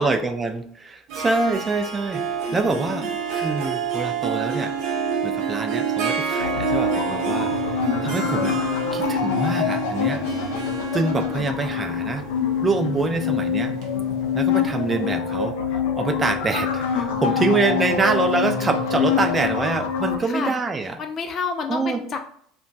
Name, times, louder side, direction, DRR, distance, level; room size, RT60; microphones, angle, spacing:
voice 1, 0.0-2.2 2.5-4.7 5.2-7.5 8.0-8.6 8.9-10.2 10.9-12.2 12.6-13.7 14.3-15.6 15.9-21.0 21.7-22.0, right 3 dB, 20° right, 7 dB, 0.4 m, -25 dB
Harp, 1.1-14.7, right 7 dB, 65° right, 0.6 m, -28 dB
voice 2, 2.5-3.1 11.0-11.5 17.3-17.6 20.2-20.5 21.0-22.2, left 5 dB, 40° left, 5 dB, 0.5 m, -30 dB
sound 1, 6.4-20.2, left 7 dB, 90° left, 0.4 m, -25 dB
2.2 x 2.2 x 3.8 m, 0.62 s
supercardioid pair, 110°, 0 cm